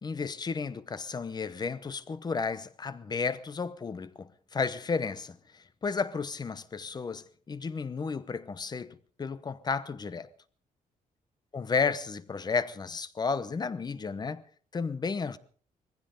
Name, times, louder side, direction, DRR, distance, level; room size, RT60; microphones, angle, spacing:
voice 1, 0.0-10.3 11.5-14.4 14.7-15.4, left 5 dB, 30° left, 0.9 m, -33 dB
21.0 x 15.5 x 3.8 m
cardioid pair, 130°, 14 cm